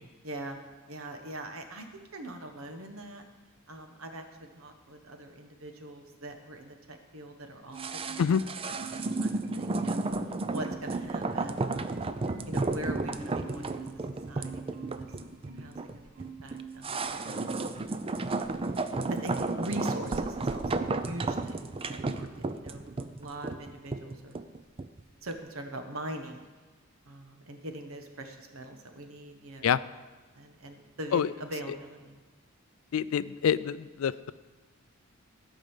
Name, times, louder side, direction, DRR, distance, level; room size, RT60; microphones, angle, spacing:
voice 1, 0.2-0.6 0.9-1.9 2.1-3.2 3.7-8.5 8.9-12.0 12.5-22.3 22.5-24.4 25.2-26.5 27.0-29.7 30.3-32.2, right 1 dB, 70° right, 5 dB, 1.3 m, -43 dB
Marimba xylophone, 7.7-8.5 8.7-10.2 10.5-11.2 11.6-15.8 16.1-16.9 17.3-17.5, right 4 dB, 40° right, 1.0 m, -46 dB
sound 1, 7.8-25.0 25.3-25.4, right 3 dB, 25° right, 0.5 m, -33 dB
voice 2, 32.9-34.1, left 7 dB, 70° left, 17 dB, 0.4 m, -26 dB
14.0 x 5.2 x 7.2 m, 1.3 s
head